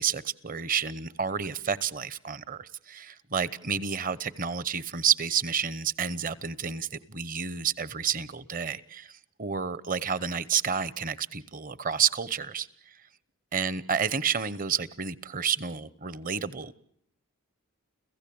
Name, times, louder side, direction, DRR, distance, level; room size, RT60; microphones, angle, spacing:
voice 1, 0.0-12.7 13.5-16.7, right 7 dB, 40° right, 19 dB, 0.9 m, -30 dB
30.0 x 16.0 x 8.6 m, 0.69 s
head